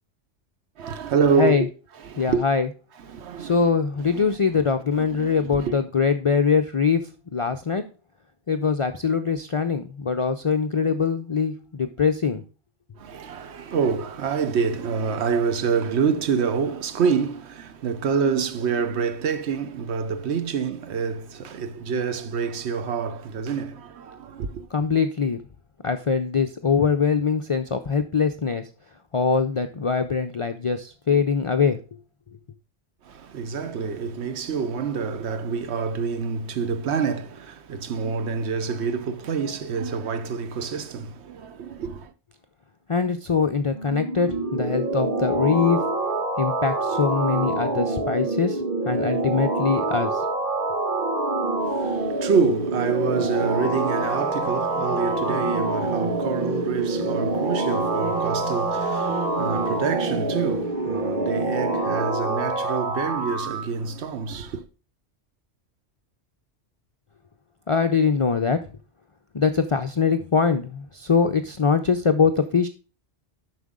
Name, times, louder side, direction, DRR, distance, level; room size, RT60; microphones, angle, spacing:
voice 1, 0.8-1.7 2.0-2.4 3.0-3.7 4.1-4.3 5.0-5.8 13.0-24.7 33.1-42.1 51.6-64.7, right 5 dB, 70° right, 1.0 m, -27 dB
voice 2, 2.2-2.7 3.4-7.0 7.3-7.8 8.5-12.4 24.7-25.4 25.8-28.7 29.1-31.8 42.9-45.9 46.4-50.2 67.7-68.6 69.3-72.7, left 5 dB, 55° left, 0.3 m, -23 dB
sound 1, 43.7-63.6, right 2 dB, 40° right, 1.8 m, -26 dB
sound 2, 51.9-62.1, right 5 dB, 15° right, 1.9 m, -38 dB
7.4 x 5.9 x 3.6 m
omnidirectional pair, 1.2 m